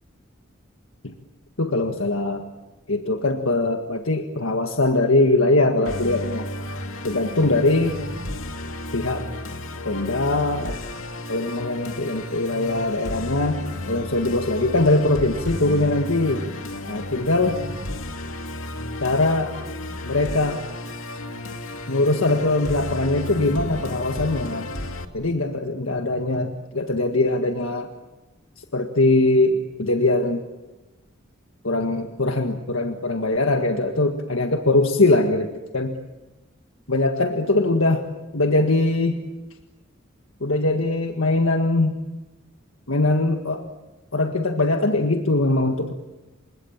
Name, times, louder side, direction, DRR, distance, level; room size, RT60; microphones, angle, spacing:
voice 1, 1.6-2.5 2.9-6.5 7.0-8.0 8.9-9.3 9.9-10.8 11.3-13.6 13.9-16.4 16.9-17.6 19.0-19.5 20.0-20.6 21.9-24.7 25.1-27.9 28.6-30.4 31.6-35.5 35.7-36.0 36.9-38.1 38.3-39.2 40.4-42.0 42.9-43.6 44.1-45.9, left 2 dB, 70° left, 4 dB, 1.8 m, -21 dB
Musical instrument, 5.9-25.1, left 1 dB, 90° left, 2.4 m, -33 dB
29.5 x 26.0 x 7.3 m, 1.1 s
head